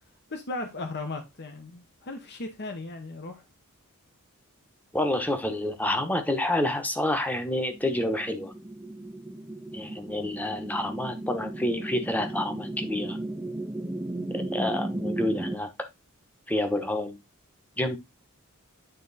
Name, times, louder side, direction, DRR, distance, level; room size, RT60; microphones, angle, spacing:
voice 1, 0.3-3.4, left 2 dB, 50° left, 1.0 m, -36 dB
voice 2, 4.9-8.5 9.7-13.2 14.3-15.7 16.5-17.2 17.8-18.0, left 1 dB, 5° left, 1.1 m, -28 dB
Space ship drone, 7.7-15.6, right 1 dB, 10° right, 0.5 m, -35 dB
9.2 x 3.7 x 4.1 m
head